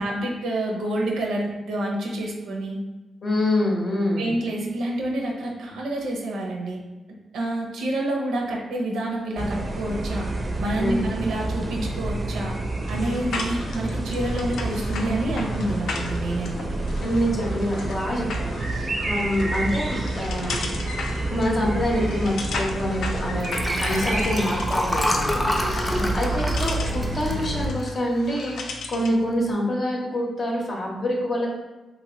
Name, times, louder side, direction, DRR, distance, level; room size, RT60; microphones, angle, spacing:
voice 1, 0.0-2.8 4.2-6.8 7.3-10.3 10.6-12.5 12.9-17.0 26.0-26.3, right 1 dB, 85° right, 0 dB, 0.5 m, -28 dB
voice 2, 3.2-4.3 10.8-11.1 17.0-20.6 21.3-31.5, left 1 dB, 55° left, -2 dB, 0.7 m, -26 dB
sound 1, 9.4-27.7, right 2 dB, 35° right, 0.4 m, -29 dB
sound 2, 12.8-29.2, left 3 dB, 80° left, 0.3 m, -36 dB
Liquid, 23.4-28.0 28.5-28.8 29.1-29.2, left 1 dB, 20° left, 0.4 m, -27 dB
2.8 x 2.5 x 3.0 m, 1.1 s
cardioid pair, 70°, 0 cm